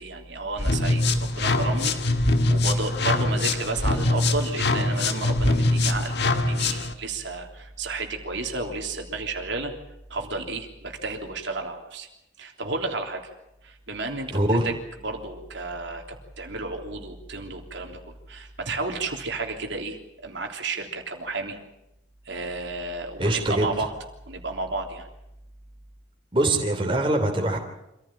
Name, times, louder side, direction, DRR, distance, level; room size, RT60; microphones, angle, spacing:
voice 1, 0.0-9.7 10.1-12.1 12.4-13.3 13.6-14.7 15.0-18.0 18.3-21.6 22.2-23.9 24.3-25.1, right 3 dB, 70° right, 2 dB, 3.4 m, -32 dB
sound 1, 0.6-6.9, left 2 dB, 60° left, 1.7 m, -23 dB
voice 2, 14.3-14.7 23.2-23.8 26.3-27.6, right 1 dB, 25° right, 2 dB, 3.1 m, -23 dB
26.5 x 15.5 x 8.9 m, 0.90 s
head